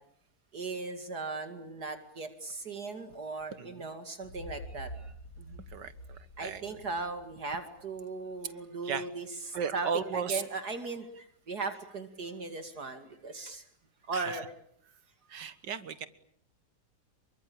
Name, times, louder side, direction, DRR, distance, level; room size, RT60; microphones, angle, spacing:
voice 1, 0.5-5.6 6.4-13.6 14.1-14.5, right 3 dB, 65° right, 7 dB, 2.9 m, -38 dB
voice 2, 3.6-3.9 5.7-6.8 8.8-9.1 9.5-10.4 14.1-14.4 15.3-16.1, right 6 dB, 80° right, 13 dB, 2.1 m, -35 dB
sound 1, 4.2-8.1, equal, 80° left, 2.7 m, -47 dB
28.0 x 24.5 x 8.8 m, 0.67 s
omnidirectional pair, 1.8 m